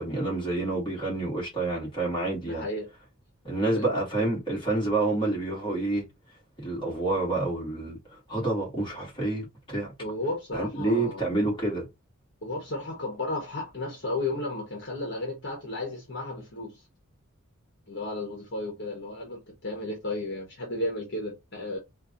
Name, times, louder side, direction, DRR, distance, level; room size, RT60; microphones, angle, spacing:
voice 1, 0.0-2.6 3.4-6.0 6.6-8.0 8.3-9.9 10.5-11.9, right 2 dB, 20° left, 2.7 m, -28 dB
voice 2, 2.4-2.9 3.7-3.9 10.0-11.3 12.4-16.8 17.9-21.8, left 2 dB, 55° left, 1.4 m, -33 dB
4.4 x 2.7 x 4.0 m
head